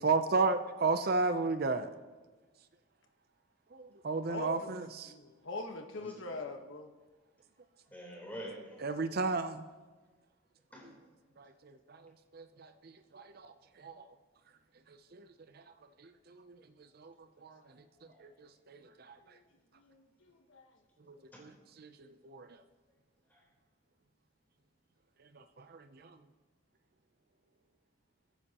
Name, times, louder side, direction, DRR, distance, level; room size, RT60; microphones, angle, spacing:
voice 1, 0.0-1.9 3.7-5.1 8.8-9.6 11.4-11.5 11.9-12.0 12.3-13.5 13.8-14.0 15.1-15.2 16.3-16.6 17.0-17.1 17.4-17.6 18.2-18.8 21.4-21.5 21.8-21.9 22.2-22.5 25.4-26.0, right 3 dB, 45° right, 9 dB, 0.5 m, -33 dB
voice 2, 4.3-4.8 5.0-6.9 19.2-19.4 19.8-20.6, left 2 dB, 70° left, 4 dB, 1.3 m, -43 dB
voice 3, 7.9-8.8 10.7-10.9 17.7-18.2 21.3-21.4 23.3-23.4, equal, 10° left, -4 dB, 3.8 m, -47 dB
22.5 x 9.9 x 3.0 m, 1.3 s
head